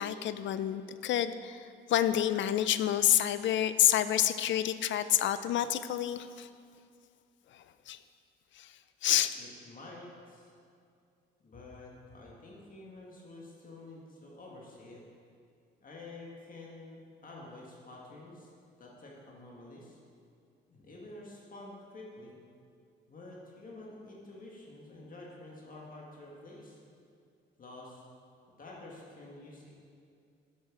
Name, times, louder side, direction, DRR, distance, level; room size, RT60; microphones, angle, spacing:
voice 1, 0.0-1.6 1.9-6.5 7.9-8.0 8.6-8.7 9.0-9.3, left 11 dB, 70° left, 13 dB, 0.5 m, -28 dB
voice 2, 9.3-10.5 11.4-15.0 15.8-18.5 18.8-20.0 20.7-22.3 23.1-26.8 27.6-28.0 28.6-29.7, left 2 dB, 45° left, -3 dB, 1.8 m, -49 dB
8.2 x 6.2 x 6.2 m, 2.4 s
cardioid pair, 90°, 20 cm